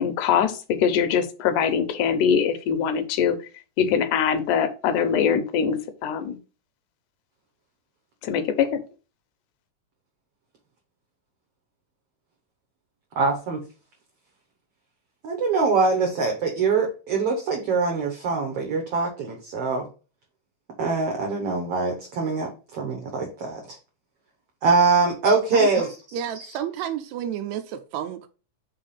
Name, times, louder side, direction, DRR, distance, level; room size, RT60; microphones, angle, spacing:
voice 1, 0.0-3.4 3.8-6.4 8.2-8.8, left 7 dB, 80° left, 2.2 m, -23 dB
voice 2, 13.2-13.6 15.2-19.9 20.8-23.8 24.6-25.9, right 4 dB, 65° right, 1.6 m, -23 dB
voice 3, 26.1-28.3, right 10 dB, 80° right, 1.6 m, -31 dB
4.9 x 3.6 x 5.5 m
omnidirectional pair, 3.7 m